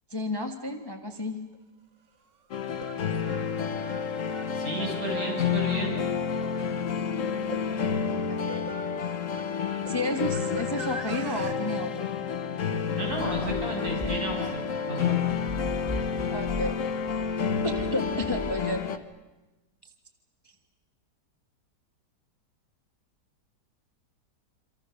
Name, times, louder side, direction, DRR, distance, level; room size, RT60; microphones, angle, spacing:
voice 1, 0.1-1.4 8.3-8.7 9.9-12.1 16.3-16.9 17.6-19.0, left 1 dB, 15° left, 5 dB, 1.4 m, -32 dB
sound 1, 1.5-1.6 2.6-11.6, right 3 dB, 85° right, 2.3 m, -45 dB
sound 2, 2.5-19.0, left 6 dB, 50° left, 1.3 m, -30 dB
voice 2, 4.5-6.1 12.9-15.2, right 2 dB, 60° right, -2 dB, 8.4 m, -33 dB
sound 3, 13.9-19.1, equal, 5° right, 8.0 m, -38 dB
27.5 x 26.5 x 6.5 m, 1.1 s
omnidirectional pair, 1.9 m